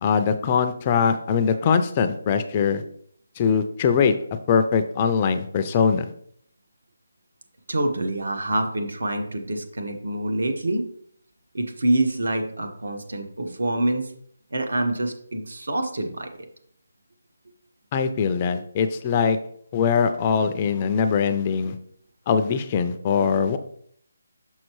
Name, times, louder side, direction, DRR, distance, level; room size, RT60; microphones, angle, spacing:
voice 1, 0.0-2.8 3.4-4.1 4.5-6.1 17.9-19.4 19.7-21.8 22.3-23.6, left 6 dB, 20° left, 9 dB, 0.3 m, -22 dB
voice 2, 7.7-10.9 11.5-14.1 14.5-16.3, right 1 dB, 75° right, 6 dB, 1.2 m, -26 dB
6.3 x 5.9 x 3.1 m, 0.65 s
hypercardioid pair, 170°, 0 cm